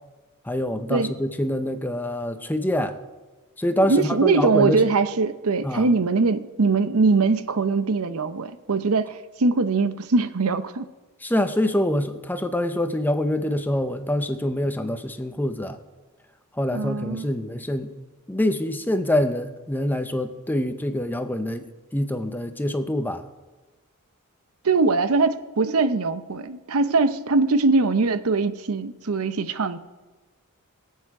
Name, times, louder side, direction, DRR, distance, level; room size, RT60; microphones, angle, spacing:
voice 1, 0.5-3.0 3.6-4.8 5.6-5.9 11.2-15.8 16.5-17.9 18.3-23.2, left 1 dB, 10° left, 8 dB, 0.7 m, -25 dB
voice 2, 3.9-10.9 16.7-17.3 24.6-29.8, right 3 dB, 80° right, 12 dB, 0.7 m, -22 dB
22.5 x 8.4 x 4.8 m, 1.2 s
head